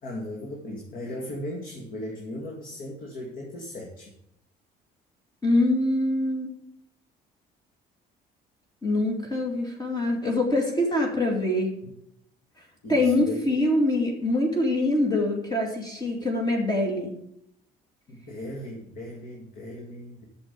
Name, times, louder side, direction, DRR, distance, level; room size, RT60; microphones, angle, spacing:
voice 1, 0.0-4.1 11.8-11.9 12.8-13.4 18.1-20.3, left 1 dB, 55° left, 0 dB, 2.1 m, -37 dB
voice 2, 5.4-6.5 8.8-11.8 12.9-17.1, left 1 dB, 25° left, 1 dB, 2.5 m, -24 dB
8.2 x 6.8 x 7.0 m, 0.75 s
cardioid pair, 110°, 17 cm